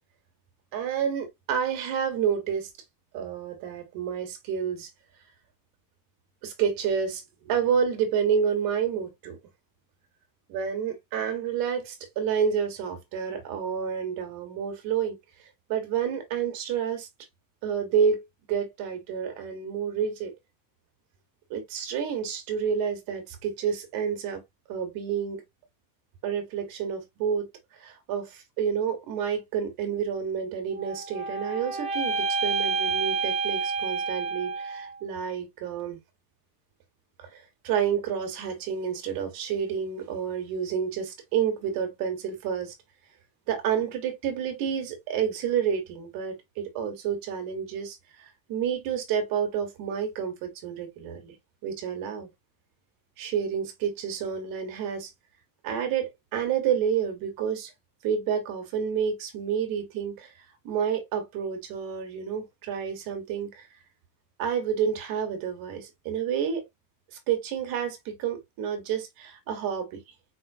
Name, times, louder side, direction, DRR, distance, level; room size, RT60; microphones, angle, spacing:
voice 1, 0.7-2.7 3.1-4.9 6.4-9.4 10.5-15.2 15.7-17.1 17.6-18.2 18.5-20.3 21.5-24.4 24.7-25.4 26.2-27.5 27.7-36.0 37.2-42.7 43.5-51.3 51.6-52.3 53.2-55.1 55.6-57.7 58.0-60.3 60.6-63.7 64.4-66.6 67.1-70.0, right 7 dB, 50° right, 1.5 m, -29 dB
sound 1, 30.7-35.0, right 4 dB, 15° right, 0.4 m, -29 dB
4.6 x 3.7 x 2.5 m
cardioid pair, 160°, 45 cm